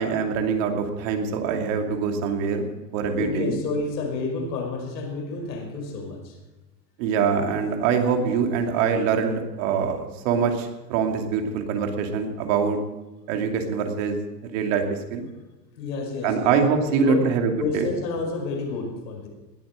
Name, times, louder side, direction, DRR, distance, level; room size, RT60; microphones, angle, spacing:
voice 1, 0.0-2.7 2.9-3.6 7.0-12.8 13.3-14.2 14.5-15.3 16.2-17.9, right 6 dB, 50° right, 4 dB, 2.7 m, -24 dB
voice 2, 3.1-6.4 15.7-16.5 16.8-19.3, left 3 dB, 80° left, 3 dB, 5.5 m, -30 dB
19.5 x 9.0 x 7.6 m, 1.1 s
supercardioid pair, 155°, 49 cm